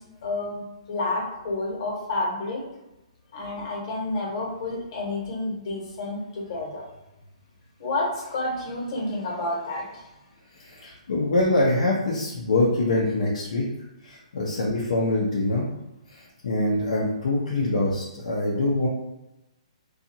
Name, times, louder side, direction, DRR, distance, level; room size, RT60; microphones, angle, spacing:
voice 1, 0.2-2.6 3.3-6.8 7.8-10.0, left 2 dB, 50° left, -3 dB, 1.1 m, -30 dB
voice 2, 10.7-13.6 14.1-15.7 16.4-18.9, left 2 dB, 80° left, -4 dB, 0.7 m, -24 dB
2.7 x 2.4 x 2.7 m, 0.95 s
hypercardioid pair, 145°, 4 cm